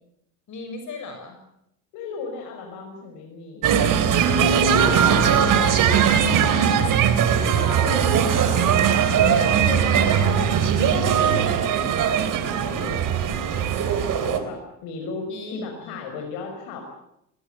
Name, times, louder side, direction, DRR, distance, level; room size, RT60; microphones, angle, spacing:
voice 1, 0.5-1.4 4.6-5.9 15.3-16.3, left 3 dB, 50° left, 5 dB, 6.6 m, -37 dB
voice 2, 1.9-3.9 7.3-8.8 9.1-16.8, left 4 dB, 75° left, 3 dB, 5.9 m, -36 dB
sound 1, 3.6-14.4, right 8 dB, 55° right, 3.5 m, -20 dB
22.0 x 19.0 x 9.0 m, 0.80 s
supercardioid pair, 95°, 38 cm